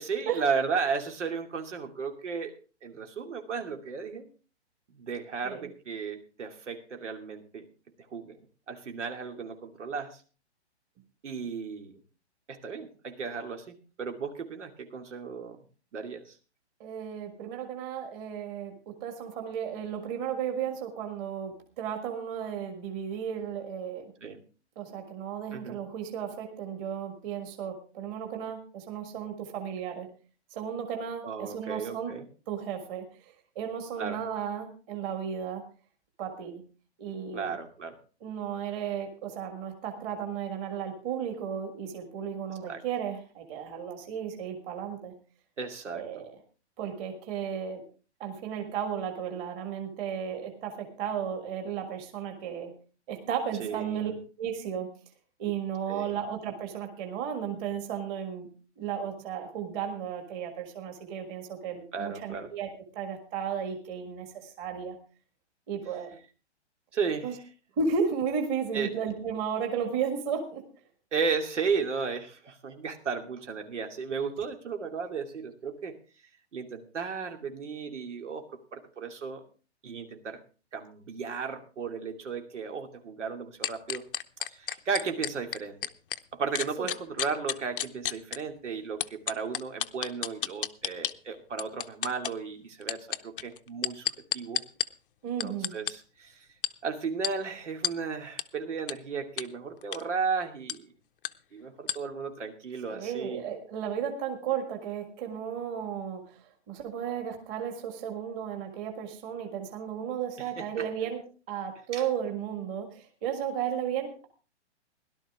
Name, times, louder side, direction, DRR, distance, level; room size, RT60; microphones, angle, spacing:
voice 1, 0.0-2.5 2.8-4.3 4.9-7.7 8.1-8.4 8.7-10.2 11.2-12.0 12.5-15.6 15.9-16.4 24.2-24.4 25.5-25.8 31.2-32.2 34.0-34.2 37.3-38.0 42.7-42.8 45.6-46.2 53.6-54.2 55.9-56.2 61.9-62.5 66.9-67.4 68.7-68.9 71.1-76.0 76.5-78.4 78.7-79.4 79.8-80.4 80.7-84.0 84.5-85.8 86.3-94.6 95.4-96.5 96.8-100.9 101.5-103.4 110.6-110.9 111.9-112.0, right 5 dB, 90° right, 5 dB, 2.6 m, -34 dB
voice 2, 16.8-24.1 24.8-30.1 30.5-32.1 32.5-35.6 36.2-36.6 37.0-37.5 38.2-45.1 45.9-46.3 46.8-47.9 48.2-52.7 53.1-54.1 54.4-54.9 55.4-58.5 58.8-65.0 65.7-66.1 67.2-67.3 67.8-70.6 86.8-86.9 95.2-95.8 102.9-111.2 111.5-114.3, right 7 dB, 20° right, 4 dB, 1.6 m, -34 dB
sound 1, 83.6-86.2 86.5-88.4 89.0-91.1 91.6-92.3 92.8-94.9 95.4-95.9 96.6-96.7 97.2-97.3 97.8-97.9 98.4-98.5 98.9-99.0 99.4-99.5 99.8-100.0 100.7-100.8 101.2-101.3 101.9-102.0, left 10 dB, 50° left, 0.7 m, -30 dB
17.0 x 12.0 x 3.6 m, 0.36 s
hypercardioid pair, 170°, 35 cm